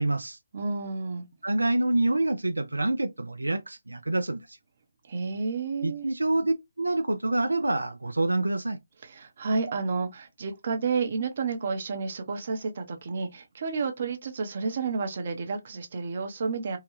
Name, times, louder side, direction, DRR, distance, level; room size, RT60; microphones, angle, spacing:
voice 1, 0.0-0.4 1.4-4.6 5.8-8.8, right 2 dB, 90° right, 0.4 m, -27 dB
voice 2, 0.5-1.2 5.1-6.1 9.0-16.8, right 4 dB, 45° right, 0.7 m, -31 dB
2.8 x 2.2 x 3.0 m
figure-of-eight pair, 150°, 0 cm